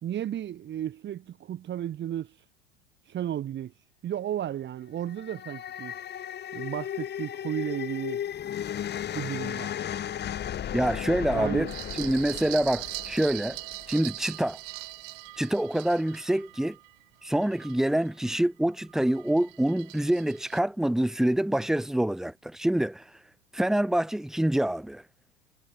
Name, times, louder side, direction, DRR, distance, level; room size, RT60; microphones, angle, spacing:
voice 1, 0.0-2.3 3.1-3.7 4.0-5.9 6.5-8.2 9.1-9.7 11.3-11.8, right 11 dB, 30° right, 4.7 m, -33 dB
sound 1, 4.9-14.2, left 10 dB, 30° left, 4.0 m, -35 dB
voice 2, 10.7-11.7 12.0-13.6 13.9-14.6 15.4-16.8 17.2-23.0 23.5-25.0, right 1 dB, ahead, 0.8 m, -26 dB
sound 2, 11.7-18.4 18.8-20.6, right 34 dB, 50° right, 4.6 m, -41 dB
figure-of-eight pair, 80°, 35 cm